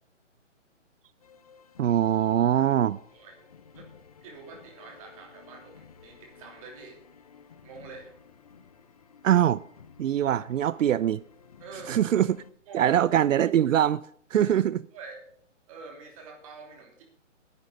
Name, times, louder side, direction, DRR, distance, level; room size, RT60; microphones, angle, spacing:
sound 1, 1.2-12.5, left 6 dB, 30° left, 0.6 m, -54 dB
voice 1, 1.8-3.0 9.2-9.6 10.0-11.2 11.9-12.4 12.7-14.0 14.3-14.8, right 10 dB, 80° right, 0.5 m, -23 dB
voice 2, 3.1-3.5 3.7-3.9 4.2-7.0 7.6-8.1 11.6-12.0 12.7-12.9 14.4-14.5 14.9-15.2 15.7-17.0, right 4 dB, 25° right, 3.0 m, -46 dB
9.7 x 9.1 x 6.5 m
hypercardioid pair, 165°, 38 cm